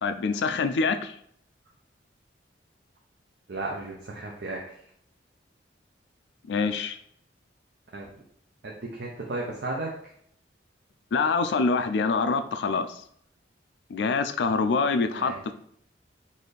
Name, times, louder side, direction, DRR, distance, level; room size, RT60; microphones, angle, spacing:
voice 1, 0.0-1.1 6.5-7.0 11.1-13.0 13.9-15.5, left 4 dB, 65° left, 9 dB, 0.3 m, -25 dB
voice 2, 3.5-4.6 7.9-8.1 8.6-9.9 15.2-15.4, right 2 dB, 65° right, -2 dB, 0.6 m, -34 dB
4.0 x 2.6 x 3.2 m, 0.66 s
head